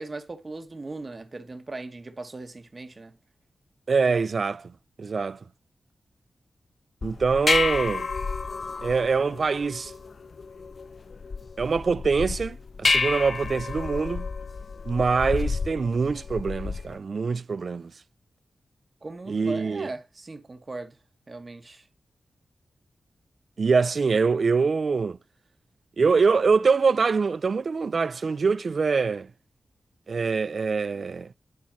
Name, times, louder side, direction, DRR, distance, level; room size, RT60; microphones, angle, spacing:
voice 1, 0.0-3.2 19.0-21.0 21.3-21.8, right 3 dB, 35° right, 1.5 m, -38 dB
voice 2, 3.9-4.7 5.0-5.4 7.0-8.1 8.8-9.9 11.6-14.3 14.9-17.9 19.3-19.9 23.6-25.2 26.0-29.3 30.1-31.3, right 4 dB, 60° right, 0.4 m, -24 dB
sound 1, 7.0-17.0, left 4 dB, 55° left, 0.5 m, -30 dB
10.5 x 4.3 x 5.6 m
wide cardioid pair, 90°, 0 cm